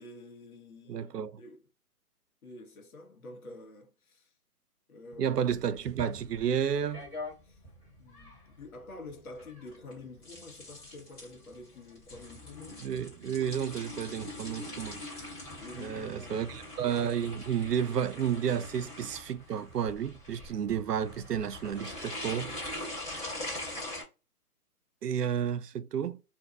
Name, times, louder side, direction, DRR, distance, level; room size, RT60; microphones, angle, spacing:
voice 1, 0.0-1.6 2.4-4.3 4.9-5.5 7.4-7.6 8.0-12.8 15.6-16.5, left 2 dB, 65° left, 1.2 m, -48 dB
voice 2, 0.9-1.4 5.2-7.1 12.8-15.0 15.8-22.6 25.0-26.2, right 8 dB, 90° right, 0.6 m, -31 dB
sound 1, 5.3-24.0, left 1 dB, 25° left, 1.5 m, -43 dB
2.6 x 2.6 x 2.3 m
hypercardioid pair, 155°, 46 cm